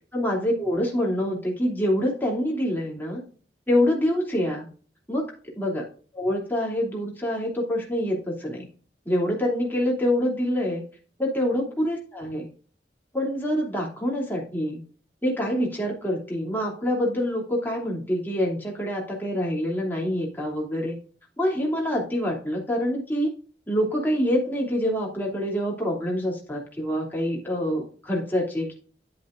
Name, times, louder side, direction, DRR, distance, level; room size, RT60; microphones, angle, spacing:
voice 1, 0.1-3.2 3.7-4.7 5.1-5.3 5.6-5.8 6.1-8.7 9.0-10.8 11.2-12.5 13.1-14.8 15.2-20.9 21.4-23.3 23.7-28.7, equal, 10° left, -3 dB, 2.8 m, -26 dB
10.0 x 7.9 x 2.5 m, 0.41 s
head